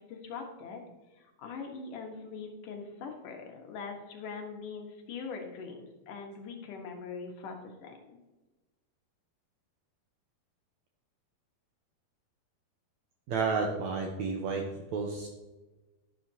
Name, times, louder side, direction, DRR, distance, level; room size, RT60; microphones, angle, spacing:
voice 1, 0.1-0.8 1.2-8.2, left 5 dB, 65° left, 2 dB, 2.7 m, -42 dB
voice 2, 13.3-14.6 14.9-15.3, right 4 dB, 80° right, 1 dB, 1.6 m, -31 dB
11.5 x 11.0 x 2.9 m, 1.1 s
omnidirectional pair, 4.5 m